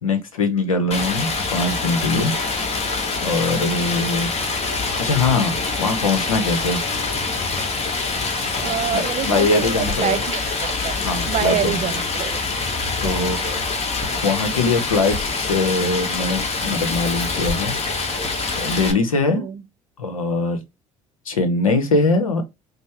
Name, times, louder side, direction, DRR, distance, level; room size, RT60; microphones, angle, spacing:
voice 1, 0.0-2.3 3.2-4.3 5.0-6.8 8.9-10.2 11.0-11.9 13.0-13.7 14.2-17.7 18.6-19.5 20.0-20.6 21.3-22.4, left 3 dB, 90° left, 0.7 m, -22 dB
Stream, 0.9-18.9, left 3 dB, 40° left, 1.0 m, -25 dB
sound 1, 7.6-7.7 8.6-8.7 9.6-10.1 10.6-11.1 12.0-12.2 12.9-13.2 13.9-14.2 15.0-15.5 16.4-16.5 17.5-17.6 18.2-18.3, left 2 dB, 15° left, 2.4 m, -34 dB
voice 2, 8.6-11.0 11.3-12.4 13.0-13.5 19.3-19.6, right 11 dB, 45° right, 0.5 m, -27 dB
5.2 x 2.0 x 3.3 m
hypercardioid pair, 60°, 17 cm